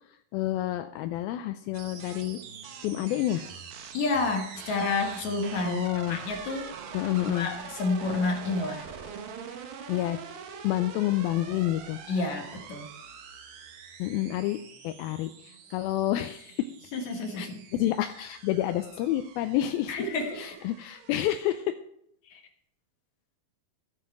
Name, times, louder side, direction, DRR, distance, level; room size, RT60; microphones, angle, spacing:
voice 1, 0.3-2.4 2.8-3.5 5.7-6.2 6.9-7.5 9.9-10.2 10.6-12.0 14.0-14.6 14.8-16.7 17.4-20.1 20.4-21.8, left 14 dB, 80° left, 8 dB, 2.3 m, -29 dB
sound 1, 1.7-21.6, right 6 dB, 70° right, 3.0 m, -44 dB
voice 2, 3.9-5.8 6.1-6.7 7.2-8.9 12.1-12.9 16.9-17.6 19.9-20.6 22.3-22.4, left 3 dB, 55° left, 3 dB, 2.5 m, -30 dB
15.5 x 7.4 x 4.7 m, 0.71 s
omnidirectional pair, 4.5 m